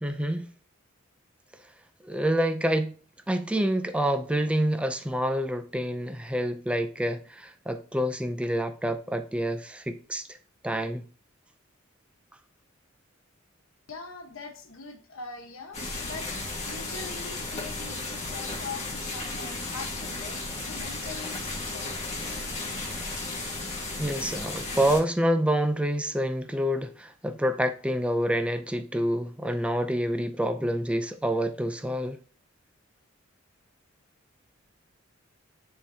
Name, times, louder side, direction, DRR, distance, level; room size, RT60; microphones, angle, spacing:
voice 1, 0.0-0.5 2.1-2.9 3.3-10.2 10.6-11.1 24.0-32.2, equal, 5° right, 0.4 m, -27 dB
voice 2, 13.9-21.9, left 4 dB, 80° left, 1.2 m, -42 dB
sound 1, 15.7-25.0, left 2 dB, 35° left, 1.7 m, -34 dB
9.7 x 3.8 x 2.8 m
head